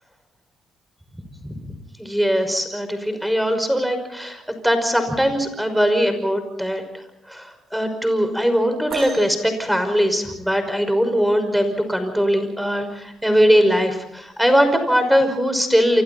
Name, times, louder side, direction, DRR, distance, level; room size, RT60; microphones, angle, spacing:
voice 1, 1.4-16.0, equal, ahead, 8 dB, 5.6 m, -21 dB
sound 1, 8.9-10.8 12.5-12.6 13.3-13.6 14.5-14.6, right 4 dB, 55° right, 6.8 m, -35 dB
29.0 x 26.0 x 4.3 m, 0.81 s
cardioid pair, 90°, 0 cm